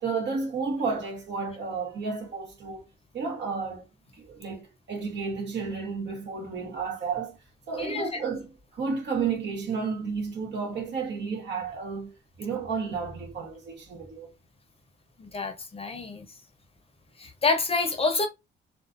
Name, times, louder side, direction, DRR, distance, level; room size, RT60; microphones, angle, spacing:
voice 1, 0.0-2.8 3.1-3.9 4.1-7.4 7.7-14.3, right 5 dB, 65° right, 1.2 m, -32 dB
voice 2, 7.8-8.2 15.2-16.3 17.2-18.3, left 3 dB, 30° left, 0.7 m, -28 dB
2.4 x 2.4 x 2.5 m
cardioid pair, 90°, 20 cm